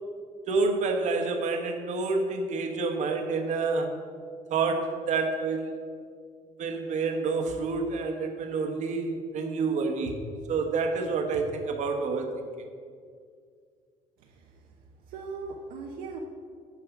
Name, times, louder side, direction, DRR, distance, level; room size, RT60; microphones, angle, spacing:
voice 1, 0.5-4.0 4.5-5.7 6.6-10.2 10.5-12.3, right 4 dB, 55° right, 4 dB, 1.1 m, -28 dB
voice 2, 14.2-14.6 15.1-16.2, right 4 dB, 75° right, 1 dB, 0.8 m, -39 dB
9.5 x 4.8 x 5.9 m, 2.1 s
cardioid pair, 125°, 15 cm